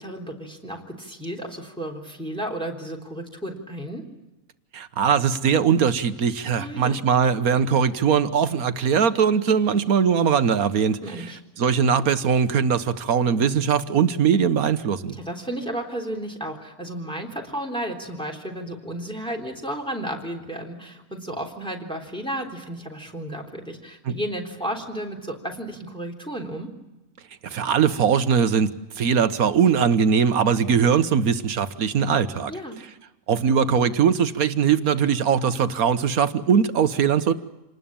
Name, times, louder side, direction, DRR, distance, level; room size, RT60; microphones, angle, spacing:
voice 1, 0.0-4.0 6.6-7.0 11.0-11.4 15.2-26.7 32.5-32.8, right 1 dB, 5° left, 1 dB, 3.6 m, -33 dB
voice 2, 4.7-11.0 11.6-15.2 24.1-24.2 27.4-32.5 33.3-37.3, right 7 dB, 80° right, 11 dB, 1.6 m, -21 dB
27.5 x 19.5 x 8.9 m, 0.98 s
omnidirectional pair, 1.5 m